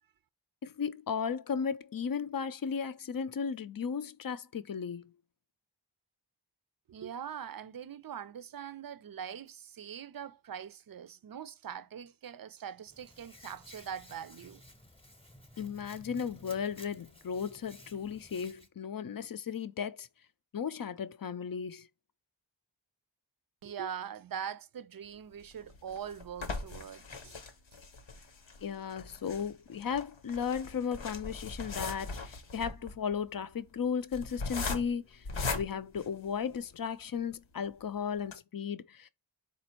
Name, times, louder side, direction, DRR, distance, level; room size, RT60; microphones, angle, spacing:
voice 1, 0.6-5.1 15.6-20.1 20.5-21.9 28.6-35.2 35.5-39.1, left 7 dB, 50° left, 0.5 m, -35 dB
voice 2, 6.9-14.6 23.6-27.4, right 8 dB, 50° right, 0.5 m, -42 dB
Hands, 12.9-18.7, equal, 10° left, 0.9 m, -54 dB
sound 1, 25.4-36.8 37.3-37.4 37.7-37.8 38.2-38.3, left 3 dB, 85° left, 0.9 m, -40 dB
4.2 x 2.5 x 4.3 m
wide cardioid pair, 45°, 45 cm